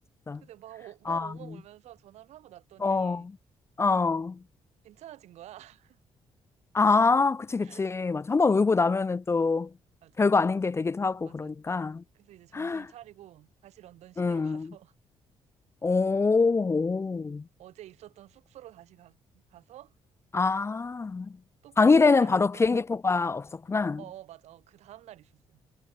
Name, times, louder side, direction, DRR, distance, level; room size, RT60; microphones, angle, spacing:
voice 1, 0.4-3.3 4.8-6.0 7.6-7.8 8.4-8.7 10.0-10.3 11.2-11.5 12.1-14.9 17.6-19.9 21.6-22.6 24.0-25.6, right 13 dB, 85° right, 2.8 m, -49 dB
voice 2, 2.8-3.3 3.8-4.4 6.7-9.7 10.2-12.0 12.5-12.9 14.2-14.7 15.8-17.4 20.3-21.3 21.8-24.0, left 4 dB, 25° left, 0.5 m, -24 dB
cardioid pair, 105°, 11 cm